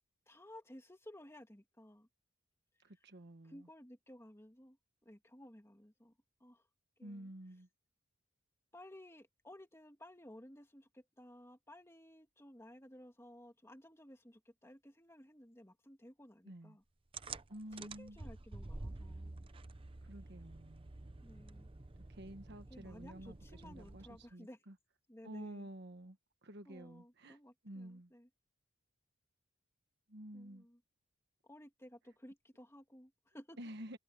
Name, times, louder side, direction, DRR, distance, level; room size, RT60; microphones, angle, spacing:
voice 1, 0.3-2.1 3.4-4.8 5.0-6.1 6.4-6.7 7.0-7.3 8.7-16.8 18.0-19.5 21.2-21.7 22.7-24.6 25.1-25.7 26.7-28.3 30.3-30.8 31.4-33.6, left 1 dB, 15° left, 2.2 m, -56 dB
voice 2, 2.8-3.7 7.0-7.7 16.4-16.8 17.5-18.2 20.0-20.9 22.1-24.8 25.2-27.4 27.6-28.1 30.1-30.7 33.6-34.0, right 1 dB, 55° right, 1.4 m, -50 dB
sound 1, 17.1-24.3, right 3 dB, 25° right, 0.7 m, -50 dB
head